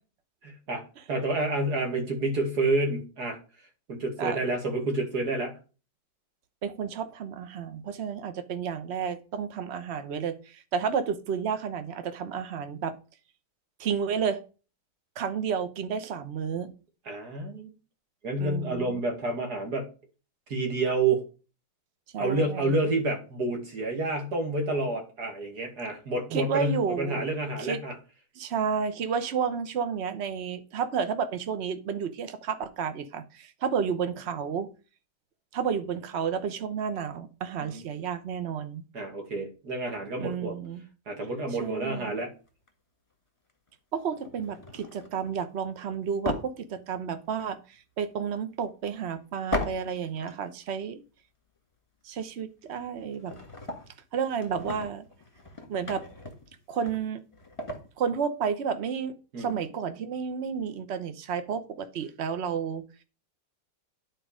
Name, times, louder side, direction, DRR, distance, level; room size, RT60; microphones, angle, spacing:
voice 1, 0.4-0.8 1.1-3.4 3.9-5.5 17.1-17.7 18.2-19.9 20.5-21.2 22.2-28.0 37.6-37.8 38.9-40.6 41.1-42.3 59.3-59.6, right 2 dB, 60° right, 2 dB, 2.8 m, -29 dB
voice 2, 6.6-12.9 13.8-14.4 15.2-16.7 18.4-19.0 22.1-22.8 26.3-27.3 27.6-27.8 28.4-34.7 35.5-38.8 40.2-40.8 41.6-42.2 43.9-51.0 52.0-53.3 54.1-55.0 55.7-56.0 56.7-57.2 58.0-62.8, right 7 dB, 45° right, 10 dB, 1.1 m, -31 dB
sound 1, 42.5-42.7 43.5-43.7 44.2-45.4 46.2-47.4 47.7-47.8 49.5-50.4 50.6-50.7 52.4-52.5 52.7-54.0 54.4-58.0, left 1 dB, 20° left, 1.6 m, -37 dB
10.5 x 4.6 x 5.0 m, 0.34 s
omnidirectional pair, 1.9 m